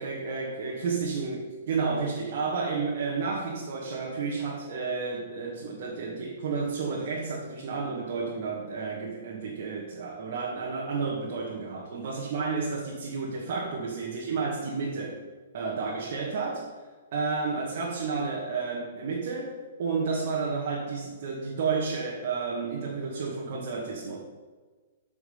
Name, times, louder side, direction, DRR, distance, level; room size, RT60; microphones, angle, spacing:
voice 1, 0.0-15.2 15.5-16.6 17.1-24.2, right 4 dB, 55° right, -4 dB, 2.0 m, -31 dB
8.3 x 5.9 x 5.7 m, 1.4 s
hypercardioid pair, 135°, 0 cm